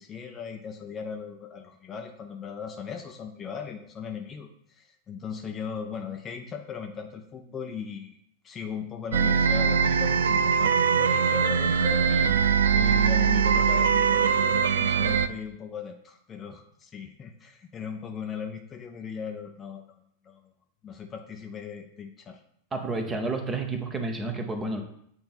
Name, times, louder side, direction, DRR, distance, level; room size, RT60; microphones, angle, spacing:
voice 1, 0.0-19.8 20.2-20.4 20.8-22.4, left 6 dB, 25° left, 4 dB, 0.6 m, -38 dB
sound 1, 9.1-15.3, right 6 dB, 65° right, 0.3 m, -22 dB
voice 2, 22.7-24.8, right 3 dB, 20° right, 5 dB, 1.0 m, -30 dB
8.6 x 2.9 x 5.5 m, 0.71 s
figure-of-eight pair, 90°, 0 cm